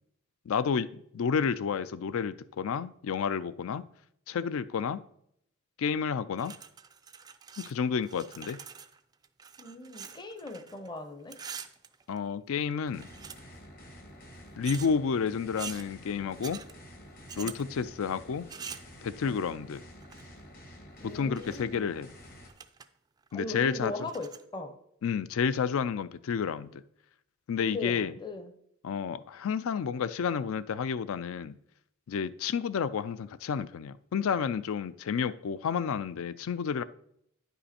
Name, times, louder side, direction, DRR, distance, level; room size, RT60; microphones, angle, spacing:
voice 1, 0.5-3.8 4.3-5.0 5.8-6.5 7.6-8.6 12.1-13.1 14.6-16.6 17.4-18.5 19.0-19.8 21.0-22.1 23.3-24.1 25.0-26.8 27.5-28.1 28.8-31.6 32.1-36.8, left 6 dB, 65° left, 16 dB, 0.4 m, -30 dB
sound 1, 6.4-7.7 8.0-10.9 11.2-12.4 12.9-13.7 14.6-14.9 15.6-15.9 16.4-16.7 17.3-17.6 18.5-18.9 20.0-20.4 21.1-21.8 22.1-22.2 22.5-22.9 23.2-23.3 24.0-24.4, right 7 dB, 20° right, 0.3 m, -44 dB
voice 2, 9.6-11.4 17.4-17.5 19.2-19.4 21.0-21.9 23.3-24.7 27.7-28.5, left 3 dB, 20° left, 8 dB, 0.7 m, -39 dB
sound 2, 12.8-22.5, equal, 45° left, 1.4 m, -50 dB
9.6 x 5.5 x 4.2 m, 0.72 s
head